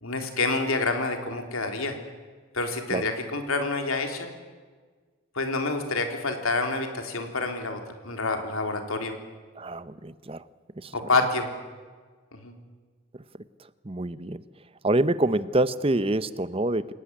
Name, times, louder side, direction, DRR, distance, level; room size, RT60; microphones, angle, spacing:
voice 1, 0.0-2.0 2.5-4.3 5.4-9.2 10.9-11.5 12.4-12.5, left 3 dB, 85° left, 5 dB, 3.5 m, -28 dB
voice 2, 9.6-10.4 10.8-10.9 13.8-14.4 14.8-16.9, right 2 dB, 25° right, 15 dB, 0.7 m, -26 dB
27.5 x 17.5 x 9.8 m, 1.5 s
head